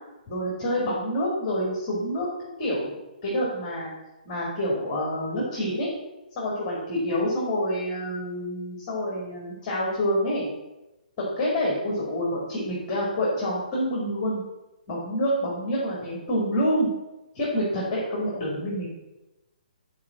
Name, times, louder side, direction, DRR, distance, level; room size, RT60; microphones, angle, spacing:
voice 1, 0.3-2.3 2.6-3.0 3.2-3.9 4.3-5.9 6.4-10.5 11.2-14.4 14.9-16.9 17.3-18.9, equal, 20° left, -5 dB, 2.3 m, -27 dB
8.5 x 4.8 x 7.3 m, 1.0 s
hypercardioid pair, 170°, 5 cm